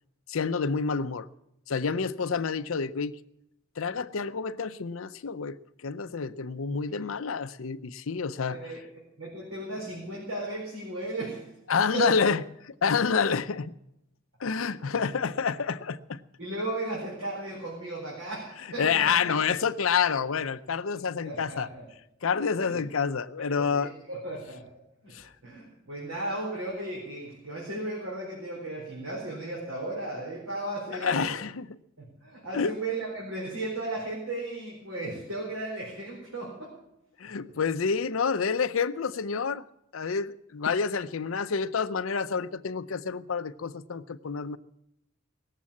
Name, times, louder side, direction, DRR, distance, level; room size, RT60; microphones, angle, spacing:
voice 1, 0.3-1.3 1.7-3.1 3.8-5.6 5.8-8.6 11.7-13.7 14.4-16.2 18.8-21.7 22.2-23.9 25.1-25.3 31.0-31.8 32.5-32.7 37.2-39.6 39.9-44.6, left 5 dB, 70° left, 0.6 m, -28 dB
voice 2, 9.2-11.4 11.9-12.1 16.4-19.4 21.2-21.8 22.6-22.8 23.5-24.6 25.0-25.1 25.4-31.4 32.0-36.7, right 2 dB, 90° right, 4.3 m, -35 dB
18.5 x 7.5 x 8.5 m
head